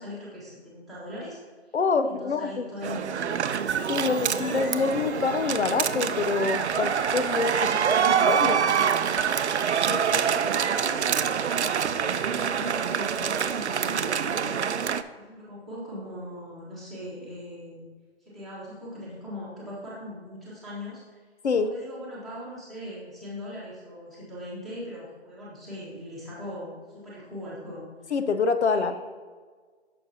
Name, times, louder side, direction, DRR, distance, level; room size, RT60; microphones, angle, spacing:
voice 1, 0.0-1.4 1.6-1.8 2.0-3.3 4.0-4.5 7.6-8.6 9.9-11.4 11.8-14.7 15.1-17.9 18.2-21.2 21.5-28.1 28.6-28.9, left 1 dB, ahead, -9 dB, 1.4 m, -40 dB
voice 2, 1.7-2.6 3.9-7.7 8.2-8.6 9.9-10.2 21.4-21.7 28.1-28.9, left 4 dB, 80° left, 9 dB, 0.7 m, -26 dB
sound 1, 2.8-15.0, right 7 dB, 80° right, 0.5 m, -26 dB
sound 2, 3.4-8.6, left 3 dB, 40° left, 1.1 m, -45 dB
9.5 x 6.6 x 2.8 m, 1.5 s
figure-of-eight pair, 155°, 33 cm